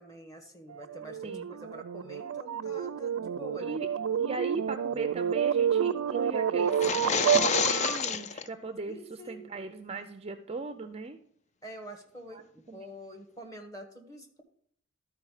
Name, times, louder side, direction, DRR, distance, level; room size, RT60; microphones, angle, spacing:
voice 1, 0.0-3.8 8.9-9.4 11.6-14.4, equal, 15° left, 3 dB, 1.4 m, -46 dB
sound 1, 0.7-8.1, right 8 dB, 85° right, 0.4 m, -29 dB
voice 2, 4.2-11.2 12.3-12.4 12.7-12.9, right 3 dB, 30° right, 8 dB, 0.5 m, -38 dB
sound 2, 6.7-8.5, left 6 dB, 35° left, 0.4 m, -28 dB
12.5 x 4.6 x 4.9 m, 0.65 s
head